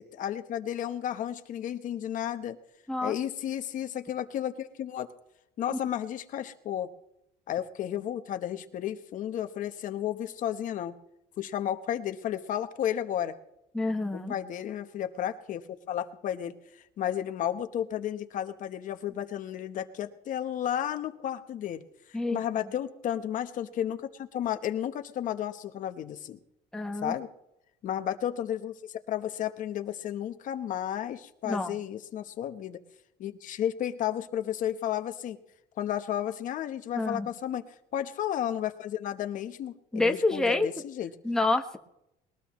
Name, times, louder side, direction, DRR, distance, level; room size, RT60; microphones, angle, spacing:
voice 1, 0.0-2.6 3.0-5.1 5.6-6.9 7.5-10.9 11.4-13.3 14.1-21.8 22.3-26.4 27.0-27.3 27.8-32.8 33.2-35.4 35.8-37.6 37.9-41.1, left 10 dB, 50° left, 9 dB, 1.1 m, -33 dB
voice 2, 13.7-14.4 22.1-22.4 26.7-27.1 31.4-31.8 36.9-37.3 39.9-40.7 41.2-41.8, left 2 dB, 5° left, 4 dB, 1.2 m, -28 dB
21.0 x 19.0 x 3.2 m, 0.81 s
cardioid pair, 140°, 17 cm